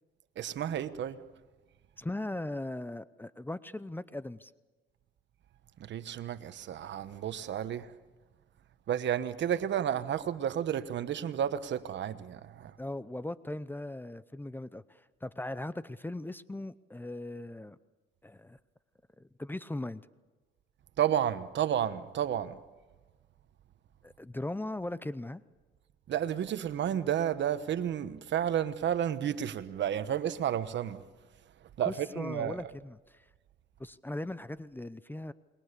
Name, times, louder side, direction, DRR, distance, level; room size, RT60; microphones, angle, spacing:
voice 1, 0.4-1.2 5.8-7.9 8.9-12.7 21.0-22.6 26.1-31.0 31.8-32.6, right 10 dB, 65° right, 1.2 m, -31 dB
voice 2, 2.0-4.5 12.8-17.8 18.2-18.6 19.2-20.0 24.0-25.4 31.8-33.2 33.8-35.3, left 1 dB, 10° left, 0.7 m, -39 dB
28.5 x 22.0 x 6.8 m
cardioid pair, 90°, 20 cm